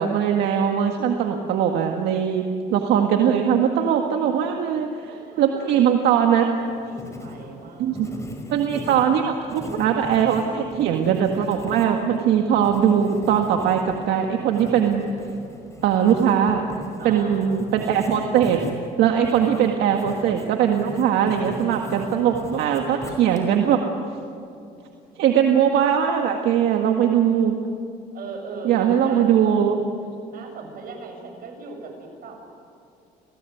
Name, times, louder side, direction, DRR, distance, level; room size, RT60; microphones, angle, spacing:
voice 1, 0.0-6.5 7.8-8.1 8.5-15.0 15.8-16.6 17.0-18.6 19.0-23.8 25.2-27.6 28.6-29.8, right 8 dB, 80° right, 3 dB, 1.9 m, -20 dB
voice 2, 5.1-8.2 17.0-17.6 28.1-29.9 30.3-32.5, right 4 dB, 60° right, 2 dB, 7.2 m, -38 dB
Writing, 6.6-23.7, left 1 dB, 15° left, 5.5 m, -39 dB
29.0 x 18.5 x 9.4 m, 2.6 s
cardioid pair, 110°, 17 cm